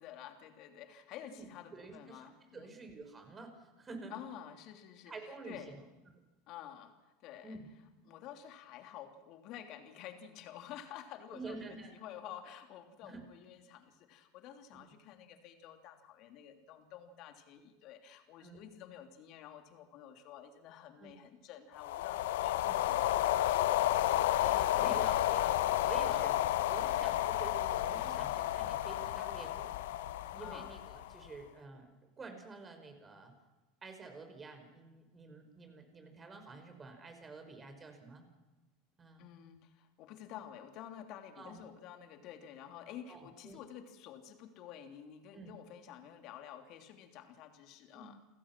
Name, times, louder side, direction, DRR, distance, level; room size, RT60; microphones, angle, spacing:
voice 1, 0.0-2.8 4.1-5.8 6.5-7.6 8.0-23.7 26.0-26.4 30.4-30.7 39.2-48.2, left 10 dB, 55° left, 5 dB, 3.2 m, -50 dB
voice 2, 1.7-2.3 2.5-4.2 5.1-5.8 7.4-7.7 11.3-11.9 13.0-13.2 14.7-14.8 18.4-18.7 21.0-21.1 22.6-22.9 24.4-26.4 26.7-29.7 30.3-31.9 32.2-33.3 33.8-38.2 39.0-39.2 41.4-41.6 42.8-43.6 45.3-45.5 47.9-48.2, right 3 dB, 25° right, 6 dB, 5.7 m, -49 dB
sound 1, 21.8-31.3, left 13 dB, 70° left, 0.9 m, -31 dB
29.0 x 16.0 x 6.1 m, 1.1 s
hypercardioid pair, 85°, 0 cm